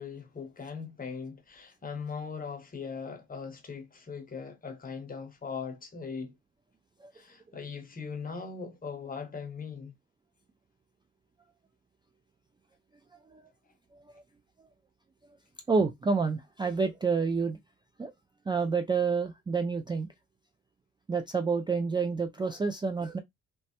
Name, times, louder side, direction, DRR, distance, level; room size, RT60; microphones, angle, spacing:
voice 1, 0.0-6.3 7.1-9.9, left 5 dB, 30° left, 0.8 m, -40 dB
voice 2, 15.7-17.6 18.0-18.1 18.5-20.1 21.1-23.2, right 4 dB, 15° right, 0.3 m, -28 dB
3.1 x 2.1 x 2.8 m
cardioid pair, 90°, 30 cm